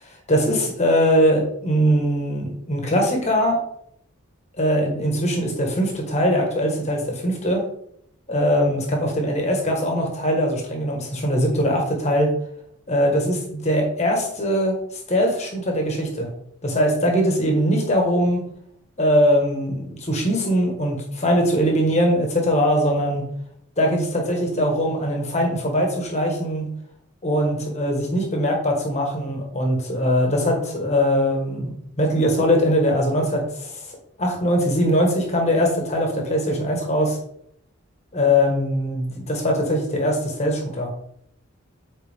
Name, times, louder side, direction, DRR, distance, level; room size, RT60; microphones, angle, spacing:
voice 1, 0.3-3.6 4.6-7.6 8.3-12.3 12.9-16.3 16.6-18.4 19.0-23.2 23.8-26.7 27.2-37.2 38.1-40.9, equal, 30° left, 1 dB, 1.6 m, -21 dB
8.5 x 4.1 x 3.6 m, 0.70 s
head